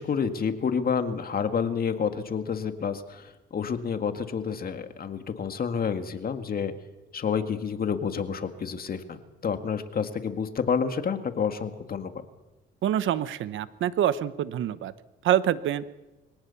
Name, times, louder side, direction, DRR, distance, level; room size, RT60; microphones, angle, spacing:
voice 1, 0.0-6.7 7.1-9.2 9.4-12.1, left 6 dB, 50° left, 8 dB, 2.0 m, -29 dB
voice 2, 12.8-14.9 15.2-15.8, right 11 dB, 75° right, 15 dB, 1.0 m, -26 dB
24.0 x 17.5 x 7.1 m, 1.1 s
cardioid pair, 90°, 20 cm